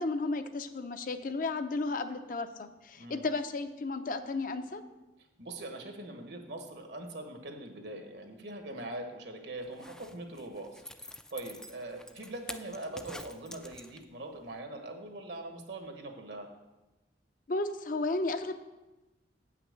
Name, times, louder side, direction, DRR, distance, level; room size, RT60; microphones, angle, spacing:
voice 1, 0.0-4.8 17.5-18.6, left 3 dB, 50° left, 8 dB, 0.6 m, -33 dB
voice 2, 5.4-16.5, right 1 dB, 75° right, 4 dB, 1.5 m, -42 dB
Zipper (clothing), 9.6-14.2 14.6-14.7, left 1 dB, 5° left, 0.3 m, -47 dB
8.6 x 5.9 x 6.6 m, 1.1 s
head